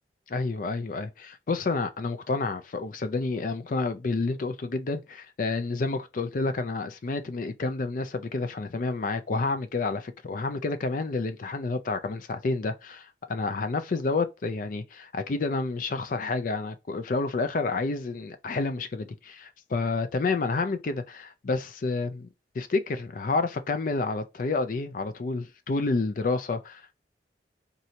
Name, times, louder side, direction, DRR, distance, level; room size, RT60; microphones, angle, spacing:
voice 1, 0.3-22.3 22.6-26.9, left 3 dB, 50° left, 0.4 m, -29 dB
2.8 x 2.6 x 3.1 m
head